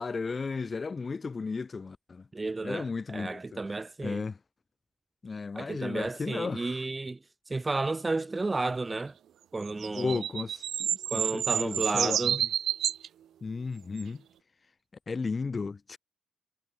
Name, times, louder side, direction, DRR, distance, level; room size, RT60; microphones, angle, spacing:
voice 1, 0.0-2.3 2.6-3.4 4.0-4.4 5.2-6.8 9.9-12.5 13.4-14.2 15.1-16.0, left 4 dB, 35° left, 1.9 m, -34 dB
voice 2, 2.3-4.2 5.6-7.2 7.5-9.1 9.5-10.2 11.1-12.4, right 3 dB, 25° right, 1.8 m, -32 dB
sound 1, 9.7-13.1 14.0-14.1, right 10 dB, 60° right, 0.8 m, -29 dB
hypercardioid pair, 40°, 0 cm